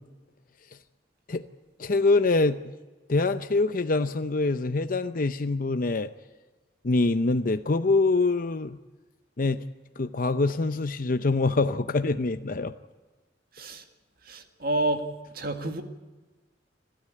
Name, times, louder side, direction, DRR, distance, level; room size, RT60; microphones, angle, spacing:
voice 1, 1.8-2.6 3.1-6.1 6.8-8.8 9.4-9.6 10.0-12.7, left 3 dB, 50° left, 10 dB, 0.7 m, -24 dB
voice 2, 13.5-13.8 14.2-15.1 15.3-15.8, right 1 dB, 55° right, 6 dB, 1.9 m, -29 dB
30.0 x 13.0 x 8.7 m, 1.3 s
head